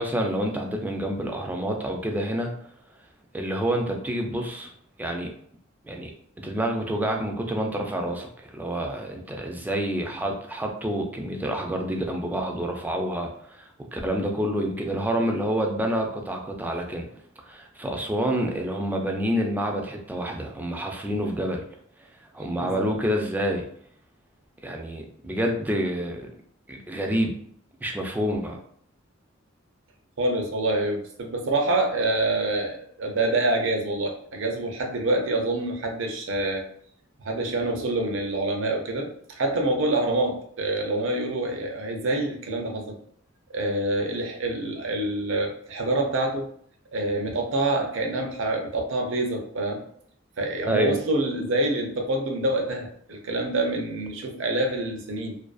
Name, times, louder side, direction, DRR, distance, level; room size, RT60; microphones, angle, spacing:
voice 1, 0.0-2.5 3.3-4.7 5.0-5.3 5.8-6.1 6.4-17.1 17.5-21.6 22.3-23.6 24.6-26.3 26.7-27.4 27.8-28.6 50.7-51.0, equal, 10° right, 2 dB, 0.3 m, -28 dB
voice 2, 22.6-22.9 30.2-36.6 37.2-43.0 43.5-46.5 46.9-49.8 50.4-55.4, right 2 dB, 70° right, 2 dB, 0.5 m, -26 dB
2.5 x 2.3 x 2.3 m, 0.63 s
head